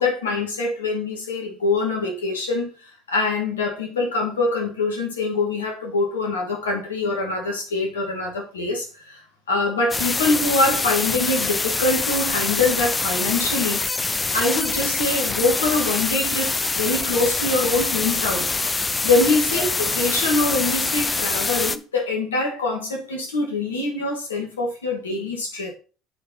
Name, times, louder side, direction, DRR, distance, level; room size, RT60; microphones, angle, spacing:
voice 1, 0.0-2.7 3.1-9.2 9.5-13.8 14.3-18.5 19.0-25.7, left 3 dB, 85° left, 2.4 m, -24 dB
sound 1, 9.9-21.8, left 3 dB, 20° left, 0.7 m, -24 dB
7.4 x 4.8 x 5.5 m
hypercardioid pair, 65°, 0 cm